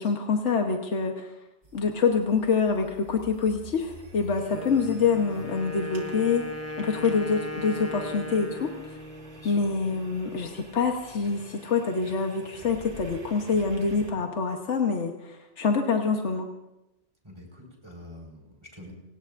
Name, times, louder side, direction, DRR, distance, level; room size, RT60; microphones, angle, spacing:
voice 1, 0.0-1.3 1.7-6.4 6.8-8.7 9.4-16.5, left 5 dB, 85° left, 3 dB, 1.4 m, -26 dB
sound 1, 1.6-14.1, right 1 dB, 80° right, 2.2 m, -48 dB
Wind instrument woodwind instrument, 4.5-10.2, left 2 dB, 15° left, 0.6 m, -38 dB
voice 2, 17.2-18.9, left 1 dB, 25° right, 0 dB, 4.9 m, -46 dB
29.0 x 17.0 x 2.6 m, 0.94 s
omnidirectional pair, 1.2 m